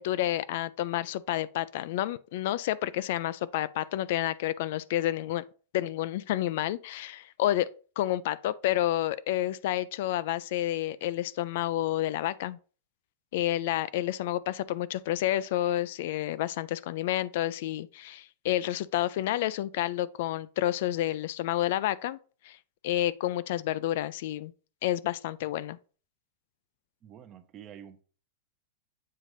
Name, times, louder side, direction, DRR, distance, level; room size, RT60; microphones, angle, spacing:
voice 1, 0.0-5.4 5.7-7.7 8.0-12.6 13.3-22.2 22.4-22.6 22.8-24.5 24.8-25.8, left 13 dB, 60° left, 0.3 m, -29 dB
voice 2, 27.0-28.0, right 9 dB, 30° right, 0.6 m, -48 dB
7.5 x 2.6 x 4.9 m
supercardioid pair, 145°, 0 cm